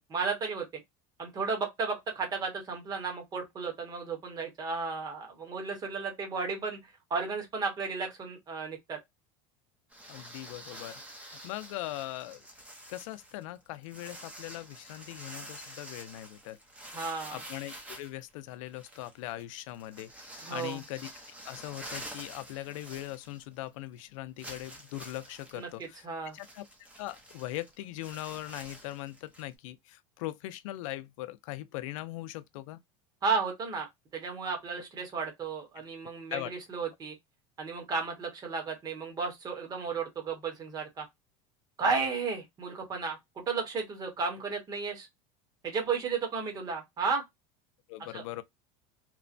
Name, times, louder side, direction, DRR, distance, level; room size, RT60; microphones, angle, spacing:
voice 1, 0.1-0.7 1.2-6.8 7.1-9.0 16.9-17.4 20.4-20.8 25.5-26.4 33.2-37.1 37.6-41.1 41.8-45.1 45.6-47.2 48.1-48.2, right 4 dB, 25° right, 1.1 m, -33 dB
sound 1, 9.9-23.7 24.0-24.1 24.4-29.5, right 1 dB, 10° right, 0.7 m, -48 dB
voice 2, 10.1-12.4 12.9-16.6 17.3-21.1 21.4-26.0 26.3-26.6 27.0-32.8 35.8-35.9 36.3-36.5 47.9-48.4, left 16 dB, 80° left, 0.5 m, -40 dB
3.0 x 2.1 x 2.5 m
supercardioid pair, 155°, 16 cm